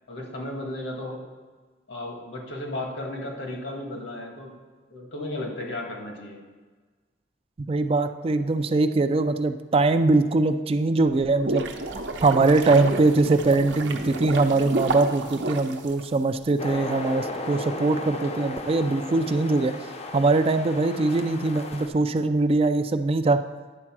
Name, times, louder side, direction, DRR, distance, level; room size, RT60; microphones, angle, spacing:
voice 1, 0.1-1.2 1.9-4.5 4.9-6.4, left 1 dB, 80° left, 1 dB, 1.7 m, -34 dB
voice 2, 7.6-11.7 12.2-19.7 20.1-23.4, right 3 dB, 30° right, 10 dB, 0.3 m, -22 dB
sound 1, 11.1-16.5, right 2 dB, 75° right, 0.8 m, -31 dB
sound 2, 16.6-21.9, left 2 dB, 35° left, 0.6 m, -35 dB
9.8 x 4.4 x 6.0 m, 1.4 s
head